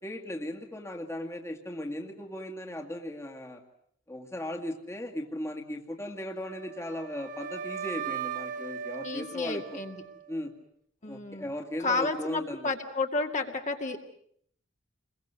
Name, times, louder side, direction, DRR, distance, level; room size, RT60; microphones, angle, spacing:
voice 1, 0.0-3.6 4.1-9.8 10.3-10.5 11.0-12.7, left 1 dB, 15° left, 1 dB, 2.2 m, -37 dB
Wind instrument woodwind instrument, 6.4-10.5, right 7 dB, 45° right, 1.8 m, -38 dB
voice 2, 9.0-10.0 11.0-11.5 11.8-14.0, left 3 dB, 40° left, 3 dB, 2.3 m, -31 dB
28.5 x 22.5 x 8.2 m, 0.67 s
head